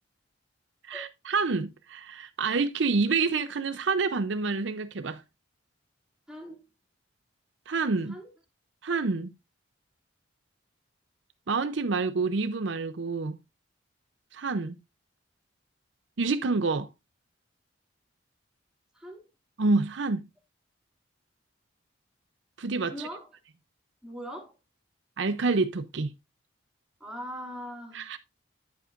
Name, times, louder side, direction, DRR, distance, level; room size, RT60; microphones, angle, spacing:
voice 1, 0.8-5.2 7.7-8.1 8.8-9.3 11.5-13.4 14.3-14.8 16.2-16.9 19.6-20.3 22.6-23.1 25.2-26.1 27.9-28.2, right 4 dB, 70° right, 0.6 m, -28 dB
voice 2, 6.3-6.6 8.1-8.3 18.9-19.3 22.8-23.3 24.0-24.6 27.0-28.1, equal, 5° right, 2.5 m, -41 dB
10.0 x 8.0 x 2.5 m
head